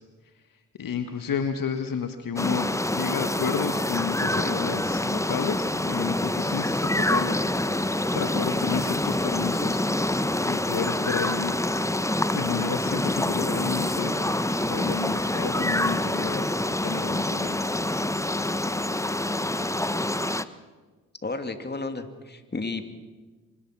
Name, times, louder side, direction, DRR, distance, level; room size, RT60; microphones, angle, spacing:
voice 1, 0.8-7.4 8.1-9.8 10.4-11.5 12.3-14.1 14.6-17.6, left 7 dB, 60° left, 7 dB, 1.7 m, -31 dB
sound 1, 2.4-20.4, left 1 dB, 10° left, 1.1 m, -26 dB
voice 2, 4.2-4.6 21.2-22.8, left 3 dB, 25° left, 8 dB, 2.8 m, -32 dB
25.0 x 20.5 x 6.2 m, 1.3 s
hypercardioid pair, 40°, 38 cm